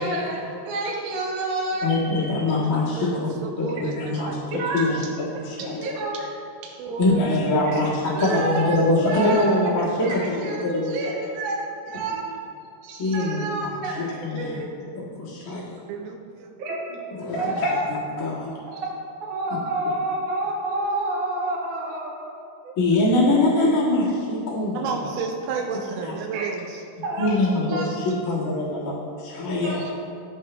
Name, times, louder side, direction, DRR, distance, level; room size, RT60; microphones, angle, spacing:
voice 1, 0.0-2.4 4.5-4.8 5.6-6.3 6.6-6.8 7.6-7.8 8.1-9.5 10.0-12.2 12.8-14.7 16.6-16.8 17.3-17.8 18.7-18.9 19.3-22.7 26.3-26.5 27.0-27.3 27.7-27.9 29.6-29.9, right 2 dB, 60° right, -4 dB, 1.7 m, -29 dB
voice 2, 1.8-3.3 3.6-4.4 4.7-5.0 5.3-5.8 7.0-11.0 13.0-13.5 14.2-14.5 14.9-15.7 17.2-18.5 22.7-24.8 26.0-26.1 27.2-27.8 28.2-29.8, left 2 dB, 70° left, -8 dB, 0.8 m, -23 dB
voice 3, 3.0-3.9 4.2-4.4 6.8-7.2 7.6-7.7 8.0-8.1 15.9-16.5 24.7-26.8, right 5 dB, 85° right, 2 dB, 2.1 m, -31 dB
12.5 x 7.4 x 2.2 m, 2.5 s
omnidirectional pair, 4.7 m